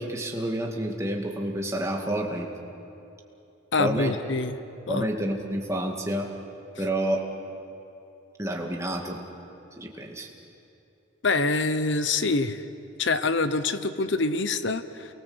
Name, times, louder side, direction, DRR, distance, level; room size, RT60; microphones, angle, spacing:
voice 1, 0.0-2.5 3.8-4.2 4.9-6.3 6.8-7.2 8.4-9.2 9.8-10.3, right 1 dB, 15° right, 0 dB, 2.3 m, -29 dB
voice 2, 3.7-4.5 4.9-5.1 11.2-12.6 13.0-15.1, left 3 dB, 55° left, 11 dB, 0.9 m, -25 dB
29.0 x 22.5 x 8.0 m, 2.8 s
head